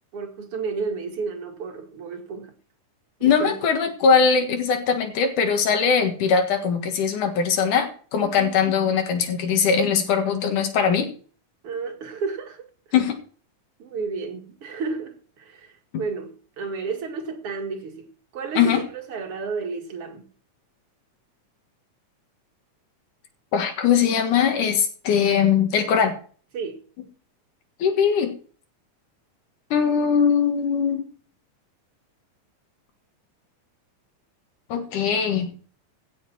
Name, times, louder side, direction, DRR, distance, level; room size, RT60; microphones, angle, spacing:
voice 1, 0.1-2.5 3.2-3.6 8.2-8.6 11.6-12.7 13.8-20.3 26.5-26.8, right 4 dB, 50° right, 2.6 m, -32 dB
voice 2, 3.2-11.1 12.9-13.2 18.6-18.8 23.5-26.1 27.8-28.3 29.7-31.0 34.7-35.5, left 6 dB, 90° left, 3.2 m, -21 dB
16.5 x 7.2 x 4.3 m
omnidirectional pair, 3.5 m